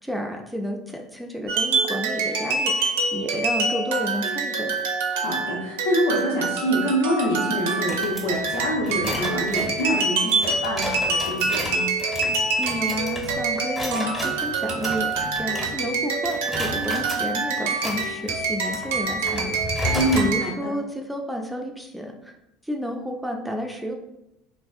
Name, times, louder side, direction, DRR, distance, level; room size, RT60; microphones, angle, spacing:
voice 1, 0.0-4.8 12.6-19.8 20.1-22.3 22.6-23.9, equal, ahead, 1 dB, 0.4 m, -31 dB
sound 1, 1.5-20.6, right 3 dB, 70° right, 0.4 m, -26 dB
voice 2, 5.1-11.9 19.9-20.7, equal, 65° left, -1 dB, 0.7 m, -26 dB
sound 2, 7.7-16.0 16.2-17.2 17.7-20.3, left 1 dB, 15° left, 0.8 m, -33 dB
3.3 x 2.3 x 2.3 m, 0.86 s
figure-of-eight pair, 65°, 0 cm